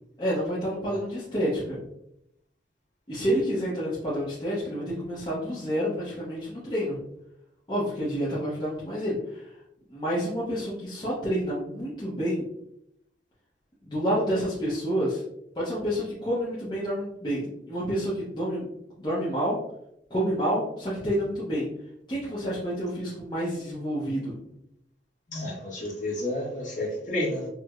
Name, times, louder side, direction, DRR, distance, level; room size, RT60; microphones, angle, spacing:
voice 1, 0.2-1.8 3.1-7.0 7.7-9.6 9.9-12.5 13.8-15.2 15.5-18.7 19.0-19.6 20.1-21.7 22.1-24.4, equal, 25° left, -8 dB, 0.6 m, -29 dB
voice 2, 25.3-27.5, left 1 dB, 45° left, -4 dB, 1.1 m, -31 dB
4.3 x 2.1 x 2.3 m, 0.79 s
head